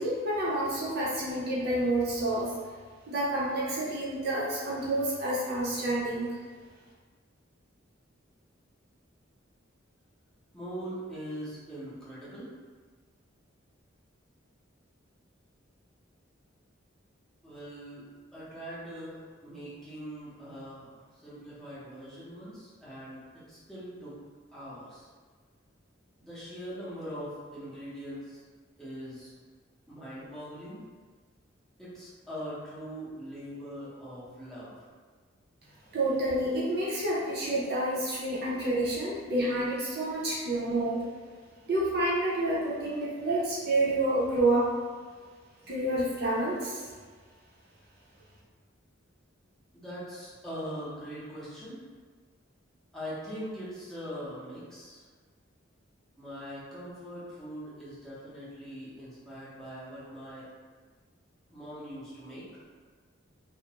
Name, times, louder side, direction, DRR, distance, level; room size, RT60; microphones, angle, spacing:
voice 1, 0.0-2.5 3.1-6.4 35.9-41.1 41.7-44.7 45.7-46.9, right 1 dB, 55° right, -7 dB, 0.6 m, -29 dB
voice 2, 10.5-12.5 17.4-18.0 18.3-24.1 24.5-25.1 26.2-28.4 28.8-29.3 29.9-30.8 31.8-34.7 49.7-51.8 52.9-55.0 56.2-60.5 61.5-62.4, equal, ahead, -11 dB, 0.6 m, -42 dB
2.4 x 2.0 x 2.8 m, 1.5 s
head